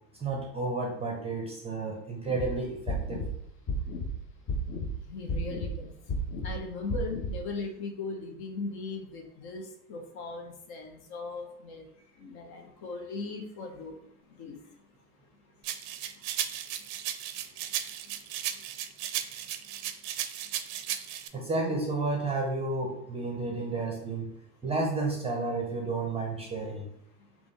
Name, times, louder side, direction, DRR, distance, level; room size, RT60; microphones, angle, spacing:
voice 1, 0.2-3.3 21.3-24.3 24.6-26.9, right 3 dB, 15° right, 0 dB, 0.6 m, -31 dB
sound 1, 2.3-2.5 2.9-3.3 3.7-4.1 4.5-4.9 5.3-5.7 6.1-6.5 6.9-7.3, left 1 dB, 25° left, 0.6 m, -32 dB
voice 2, 5.1-5.9 6.4-11.9 12.2-14.0 14.4-14.6, left 3 dB, 50° left, 3 dB, 0.9 m, -38 dB
sound 2, 15.6-21.3, right 11 dB, 60° right, 0.5 m, -35 dB
3.4 x 2.4 x 4.0 m, 0.74 s
hypercardioid pair, 100°, 47 cm